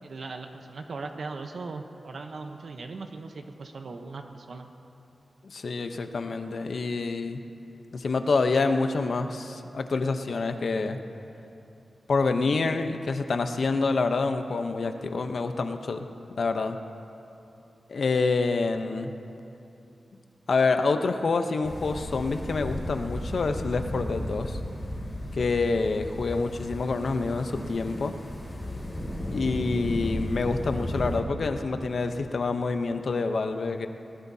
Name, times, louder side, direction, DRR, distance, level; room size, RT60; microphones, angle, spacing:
voice 1, 0.0-4.7, right 3 dB, 70° right, 5 dB, 0.9 m, -39 dB
voice 2, 5.4-7.4 7.9-11.0 12.1-16.1 16.4-16.8 17.9-19.1 20.5-24.6 25.3-28.1 29.3-33.9, left 4 dB, 65° left, 7 dB, 0.8 m, -27 dB
sound 1, 21.6-31.2, left 1 dB, 35° left, 2.7 m, -34 dB
20.5 x 19.0 x 2.8 m, 2.8 s
wide cardioid pair, 95°, 0 cm